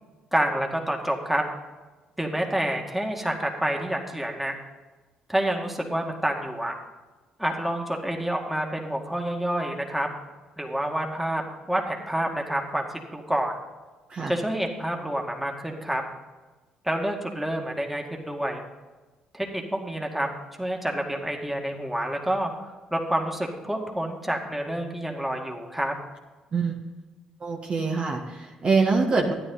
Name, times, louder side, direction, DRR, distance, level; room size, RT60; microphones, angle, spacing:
voice 1, 0.3-1.4 2.2-4.5 5.3-6.8 7.4-10.1 10.6-11.4 11.7-13.6 14.3-16.0 16.8-18.6 19.3-20.3 20.6-25.9, right 1 dB, 5° right, 2 dB, 2.0 m, -28 dB
voice 2, 26.5-26.8 27.4-29.3, right 4 dB, 45° right, 1 dB, 1.5 m, -24 dB
12.0 x 9.6 x 3.9 m, 1.3 s
hypercardioid pair, 55°, 3 cm